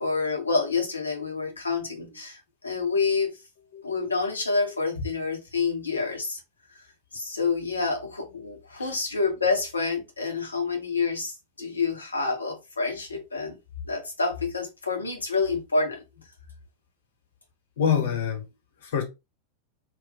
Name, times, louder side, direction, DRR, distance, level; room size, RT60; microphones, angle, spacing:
voice 1, 0.0-3.3 3.8-6.4 6.7-6.8 7.1-13.6 13.9-16.0, left 4 dB, 80° left, 1.4 m, -28 dB
voice 2, 17.8-18.5 18.8-19.0, left 8 dB, 60° left, 1.5 m, -26 dB
4.1 x 2.6 x 3.7 m
figure-of-eight pair, 90°, 0 cm